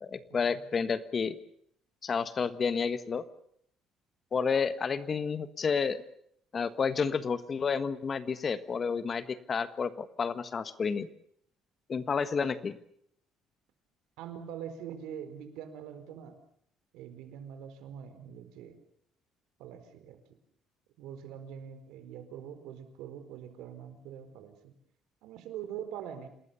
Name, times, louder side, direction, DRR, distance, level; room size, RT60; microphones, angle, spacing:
voice 1, 0.0-1.4 2.0-3.2 4.3-6.0 6.5-11.1 11.9-12.8, left 5 dB, 35° left, 13 dB, 1.5 m, -30 dB
voice 2, 14.2-16.4 16.9-18.8 19.6-20.2 21.0-24.7 25.2-26.3, right 9 dB, 90° right, 9 dB, 4.4 m, -43 dB
27.5 x 20.0 x 7.0 m, 0.69 s
cardioid pair, 135°, 0 cm